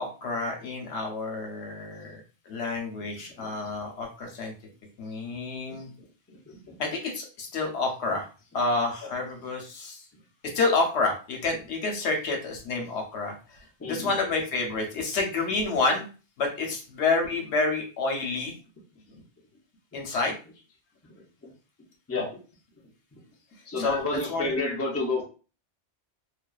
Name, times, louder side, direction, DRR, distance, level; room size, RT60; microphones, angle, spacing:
voice 1, 0.0-2.2 2.5-4.5 5.0-5.9 6.8-8.3 8.5-10.0 10.5-13.3 13.9-16.0 16.4-18.5 19.9-20.3 23.8-24.0 24.3-24.5, left 3 dB, 85° left, 2 dB, 1.0 m, -28 dB
voice 2, 6.3-6.8 9.0-9.1 13.8-14.1 22.1-22.3 23.7-25.2, left 3 dB, 20° left, -2 dB, 0.5 m, -30 dB
2.5 x 2.2 x 2.3 m, 0.35 s
omnidirectional pair, 1.1 m